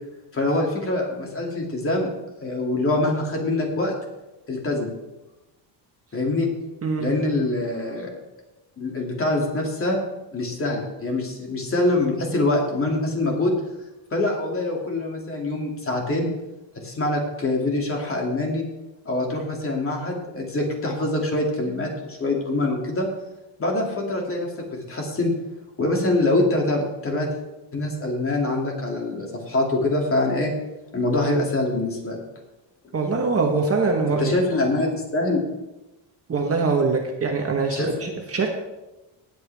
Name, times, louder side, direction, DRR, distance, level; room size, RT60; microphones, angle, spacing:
voice 1, 0.3-2.1 2.4-4.0 4.5-4.9 6.1-6.5 7.0-8.1 8.8-10.0 10.3-13.6 14.1-16.3 16.8-18.6 19.0-23.1 23.6-25.3 25.8-27.3 27.7-30.5 30.9-32.2 34.2-35.4 37.7-37.9, left 2 dB, 30° left, 0 dB, 2.8 m, -24 dB
voice 2, 32.9-34.3 36.3-38.5, right 4 dB, 30° right, 2 dB, 1.4 m, -23 dB
18.5 x 8.3 x 3.6 m, 1.0 s
cardioid pair, 140°, 46 cm